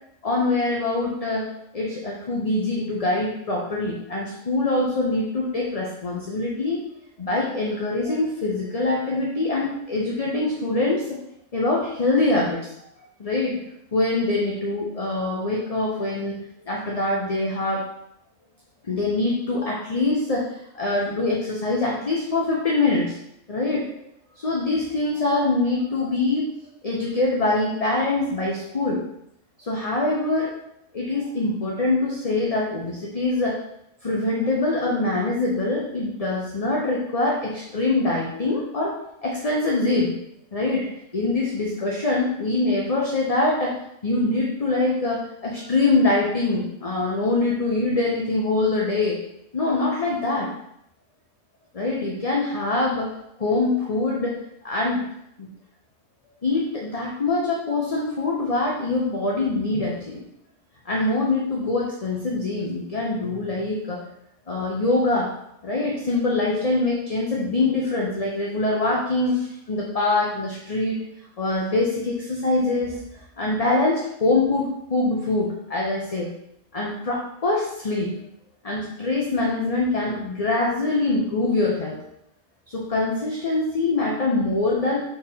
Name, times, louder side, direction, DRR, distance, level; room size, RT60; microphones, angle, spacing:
voice 1, 0.2-1.5 1.7-6.8 7.2-11.0 11.5-12.7 13.0-13.6 13.9-16.4 16.7-17.8 18.8-23.2 23.5-23.9 24.4-26.5 26.8-29.0 29.6-30.5 30.9-33.6 34.0-38.9 39.2-40.1 40.5-40.9 41.1-43.7 44.0-49.2 49.5-50.5 51.7-53.1 53.4-54.4 54.6-55.0 55.4-55.5 56.4-60.2 60.8-64.0 64.5-65.3 65.6-71.0 71.4-76.3 76.7-78.1 78.6-82.0 82.7-85.0, left 2 dB, 30° left, -3 dB, 0.9 m, -24 dB
4.4 x 4.3 x 5.6 m, 0.78 s
omnidirectional pair, 1.4 m